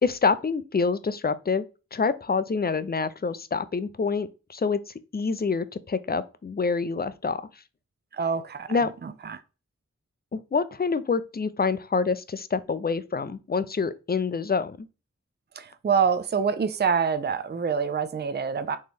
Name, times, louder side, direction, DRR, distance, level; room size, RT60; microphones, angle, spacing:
voice 1, 0.0-1.6 1.9-7.5 8.7-8.9 10.3-14.8, left 4 dB, 35° left, 0.4 m, -26 dB
voice 2, 8.1-8.7 9.0-9.4 15.6-18.8, right 6 dB, 35° right, 0.4 m, -26 dB
4.3 x 3.0 x 3.3 m
wide cardioid pair, 40°, 29 cm